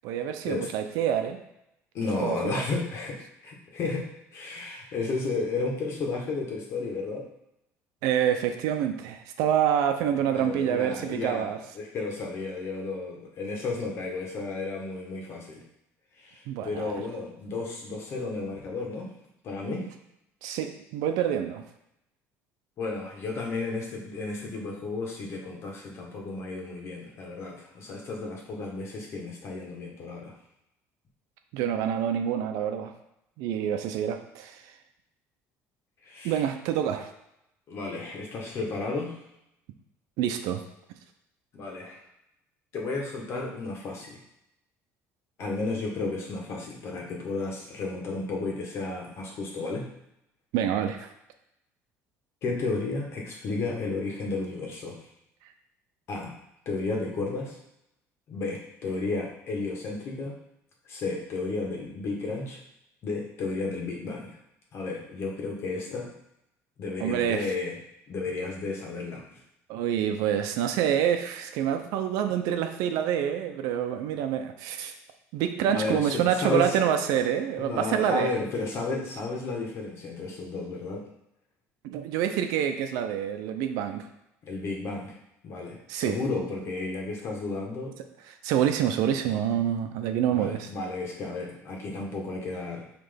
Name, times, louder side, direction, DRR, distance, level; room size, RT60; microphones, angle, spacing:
voice 1, 0.0-1.4 2.2-2.6 8.0-11.6 16.5-16.9 20.4-21.7 31.5-32.9 33.4-34.6 36.2-37.1 40.2-40.6 50.5-51.1 67.0-67.5 69.7-74.9 75.3-78.3 81.8-84.1 85.9-86.2 88.4-90.7, right 9 dB, 85° right, 7 dB, 0.7 m, -27 dB
voice 2, 1.9-7.3 10.0-15.6 16.2-19.1 19.4-19.9 22.8-30.3 36.0-36.4 37.7-39.2 41.5-42.0 42.7-44.2 45.4-49.9 52.4-55.0 56.1-56.3 56.6-57.6 58.3-60.4 60.9-62.6 63.0-64.4 64.7-66.1 66.8-67.7 68.1-69.4 75.7-76.9 77.6-81.1 84.4-85.2 85.4-87.9 90.3-92.9, left 3 dB, 45° left, 0 dB, 1.6 m, -33 dB
6.0 x 3.3 x 5.2 m, 0.83 s
cardioid pair, 150°, 6 cm